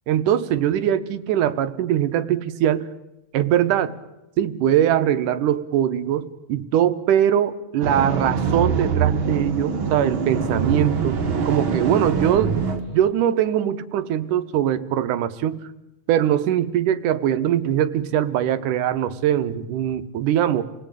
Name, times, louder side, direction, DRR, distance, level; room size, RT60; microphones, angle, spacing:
voice 1, 0.1-2.9 3.3-3.9 4.4-11.2 11.5-15.6 16.1-20.6, right 10 dB, 70° right, 11 dB, 2.4 m, -21 dB
sound 1, 7.8-12.8, right 5 dB, 40° right, 2.1 m, -24 dB
28.5 x 20.0 x 9.0 m, 0.93 s
omnidirectional pair, 4.3 m